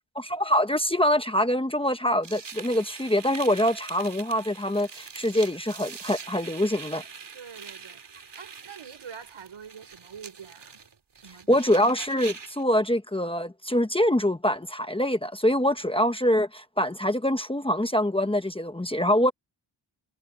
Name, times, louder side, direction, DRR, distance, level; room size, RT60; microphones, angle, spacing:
voice 1, 0.1-7.0 11.5-19.3, left 1 dB, 10° left, 1.1 m, -24 dB
sound 1, 2.2-12.6, right 5 dB, 55° right, 3.5 m, -43 dB
voice 2, 7.3-10.8 11.1-11.6 15.8-15.9, right 7 dB, 75° right, 5.2 m, -45 dB
wide cardioid pair, 145°, 48 cm